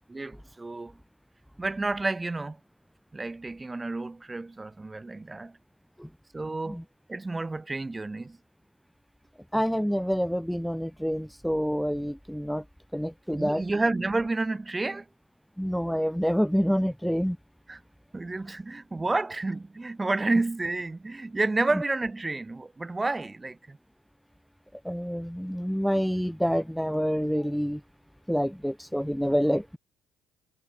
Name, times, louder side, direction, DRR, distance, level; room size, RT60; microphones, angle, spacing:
voice 1, 0.1-1.0 1.6-2.6 3.1-5.6 6.3-6.8 7.1-8.4 13.3-15.1 17.7-17.8 18.1-23.8, right 2 dB, 20° right, 2.5 m, -30 dB
voice 2, 9.5-12.6 12.9-13.6 15.6-17.4 24.8-27.8 28.3-29.8, equal, ahead, 0.8 m, -27 dB
supercardioid pair, 75°, 0 cm